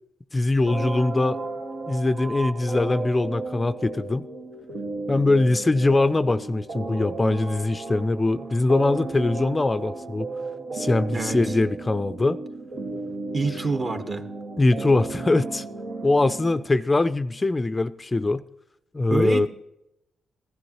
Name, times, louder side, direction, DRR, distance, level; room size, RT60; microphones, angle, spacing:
voice 1, 0.3-1.4 1.9-4.3 5.1-10.3 10.7-12.4 14.6-15.6 16.0-18.4 18.9-19.5, left 2 dB, 25° left, 0.4 m, -22 dB
sound 1, 0.7-16.7, right 3 dB, 90° right, 1.8 m, -34 dB
voice 2, 11.1-11.5 13.3-14.2 19.1-19.5, right 3 dB, 40° right, 1.3 m, -26 dB
15.5 x 13.0 x 3.0 m
cardioid pair, 70°, 0 cm